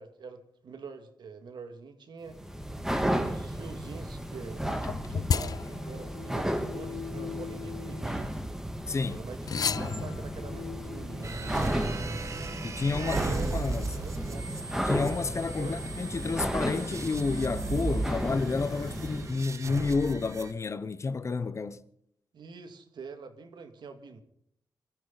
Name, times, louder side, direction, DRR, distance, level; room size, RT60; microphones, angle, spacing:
voice 1, 0.0-2.4 3.1-8.3 9.1-11.5 13.0-14.5 15.6-15.8 22.3-24.2, right 5 dB, 80° right, 2.3 m, -45 dB
sound 1, 2.3-19.5, right 1 dB, 5° right, 2.0 m, -34 dB
sound 2, 4.8-8.6 9.4-11.7, left 7 dB, 55° left, 0.6 m, -35 dB
voice 2, 8.9-9.2 12.6-13.9 14.8-21.8, left 4 dB, 40° left, 0.9 m, -30 dB
sound 3, 11.2-20.5, right 3 dB, 40° right, 1.6 m, -36 dB
25.0 x 14.0 x 4.1 m
wide cardioid pair, 135°, 8 cm